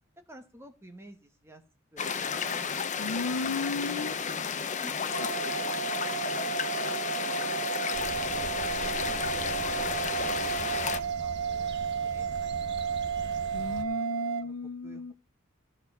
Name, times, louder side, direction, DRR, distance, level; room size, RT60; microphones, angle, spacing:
voice 1, 0.3-1.6 1.9-2.0 2.3-2.7 3.8-4.3 4.6-12.7 13.4-13.9 14.4-15.1, right 1 dB, 10° right, 1.1 m, -52 dB
sound 1, 2.0-11.0, left 6 dB, 35° left, 0.9 m, -32 dB
voice 2, 3.0-4.1 13.5-15.1, left 3 dB, 90° left, 0.6 m, -34 dB
sound 2, 5.1-14.4, right 7 dB, 80° right, 1.0 m, -33 dB
sound 3, 7.9-13.8, right 2 dB, 55° right, 1.2 m, -43 dB
15.0 x 6.7 x 5.4 m
head